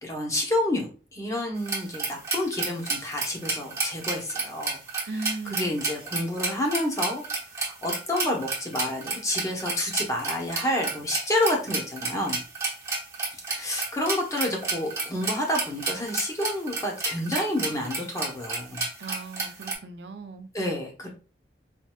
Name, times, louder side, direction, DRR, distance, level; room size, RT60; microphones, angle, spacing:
voice 1, 0.0-4.8 5.5-7.2 7.6-12.4 13.5-18.8 20.5-21.1, left 1 dB, 20° left, 0.8 m, -29 dB
sound 1, 1.7-19.7, right 3 dB, 15° right, 0.8 m, -31 dB
voice 2, 5.1-5.7 19.0-20.5, right 3 dB, 70° right, 0.5 m, -37 dB
4.3 x 2.6 x 2.3 m
head